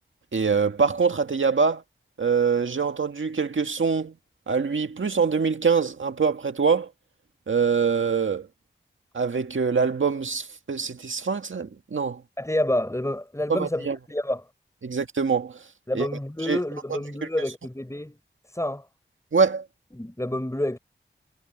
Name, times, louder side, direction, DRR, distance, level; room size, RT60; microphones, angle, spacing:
voice 1, 0.3-1.8 2.2-4.1 4.5-6.9 7.5-8.5 9.1-12.2 13.5-14.0 14.8-15.6 15.9-16.1 16.5-16.6 19.3-19.7, right 5 dB, 80° right, 1.8 m, -24 dB
voice 2, 12.4-14.5 15.9-18.2 18.5-18.9 19.9-20.8, left 1 dB, 15° left, 5.2 m, -28 dB
wide cardioid pair, 55°, 20 cm